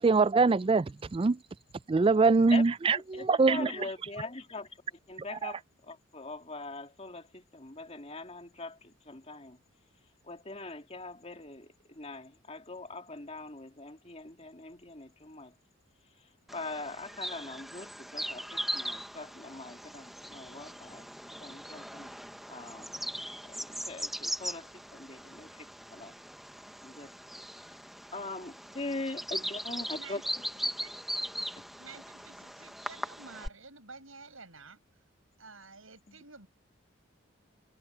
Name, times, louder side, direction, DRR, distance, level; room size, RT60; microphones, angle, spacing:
voice 1, 0.0-1.4 1.9-3.7 5.4-5.5, right 4 dB, 25° right, 0.3 m, -24 dB
voice 2, 3.1-4.7 5.1-9.6 10.2-15.5 16.5-22.1 22.5-26.2 26.8-27.1 28.1-30.4 36.1-36.2, left 2 dB, 30° left, 2.6 m, -42 dB
Bird vocalization bird call bird song, 16.5-33.5, equal, ahead, 1.0 m, -39 dB
voice 3, 29.9-31.0 31.8-34.8 35.4-36.5, right 4 dB, 75° right, 7.5 m, -51 dB
head